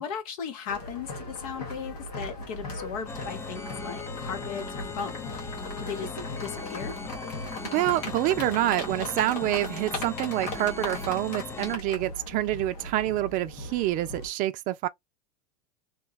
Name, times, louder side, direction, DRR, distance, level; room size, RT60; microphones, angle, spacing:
voice 1, 0.0-7.0, left 7 dB, 60° left, 0.8 m, -37 dB
sound 1, 0.7-14.3, left 2 dB, 80° left, 1.3 m, -38 dB
sound 2, 3.1-11.8, left 4 dB, 15° left, 0.5 m, -39 dB
voice 2, 7.7-14.9, right 15 dB, 45° right, 0.4 m, -27 dB
2.8 x 2.2 x 3.9 m
hypercardioid pair, 90°, 20 cm